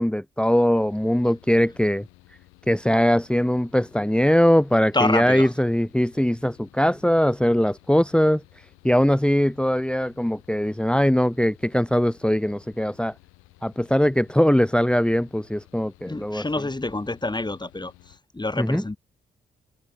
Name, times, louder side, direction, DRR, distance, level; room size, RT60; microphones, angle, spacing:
voice 1, 0.0-2.4 2.7-13.1 13.6-16.4 18.6-18.8, equal, 5° left, 2.4 m, -21 dB
Mechanical fan, 0.7-18.2, left 22 dB, 85° left, 8.0 m, -55 dB
voice 2, 4.9-5.5 16.1-17.9 18.3-19.0, left 2 dB, 20° left, 5.7 m, -27 dB
hypercardioid pair, 45°, 21 cm